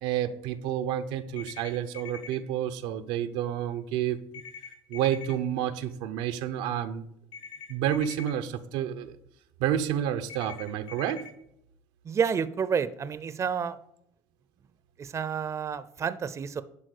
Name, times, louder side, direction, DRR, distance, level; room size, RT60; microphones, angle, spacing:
voice 1, 0.0-4.2 4.9-7.1 7.7-9.1 9.6-11.2, right 10 dB, 85° right, 9 dB, 0.8 m, -29 dB
sound 1, 1.4-2.4 4.3-5.3 7.3-8.3 10.3-11.3, left 6 dB, 70° left, 2.5 m, -44 dB
voice 2, 12.1-13.8 15.0-16.6, right 6 dB, 30° right, 14 dB, 0.6 m, -29 dB
11.0 x 3.7 x 6.6 m, 0.75 s
supercardioid pair, 105°, 10 cm